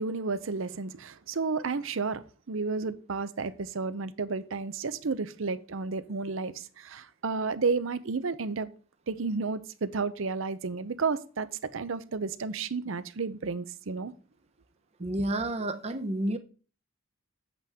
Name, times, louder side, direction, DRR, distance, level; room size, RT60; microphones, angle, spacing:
voice 1, 0.0-8.7 9.1-11.5 11.7-14.1 15.0-15.1, right 4 dB, 75° right, 0.6 m, -32 dB
voice 2, 15.0-16.4, right 1 dB, 30° right, 0.7 m, -30 dB
8.2 x 7.5 x 3.5 m
head